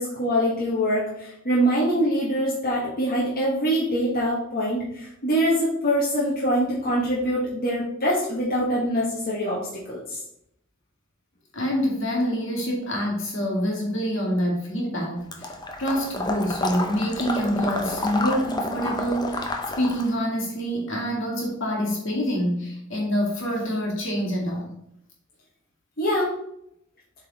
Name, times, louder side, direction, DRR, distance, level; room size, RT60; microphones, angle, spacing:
voice 1, 0.0-10.2 26.0-26.4, equal, 45° left, -6 dB, 1.4 m, -24 dB
voice 2, 11.5-15.5 15.8-19.5 19.8-24.6, equal, 65° left, -1 dB, 2.2 m, -26 dB
Water / Liquid, 15.3-20.1, left 2 dB, 20° left, 0.8 m, -30 dB
7.6 x 4.1 x 4.1 m, 0.76 s
head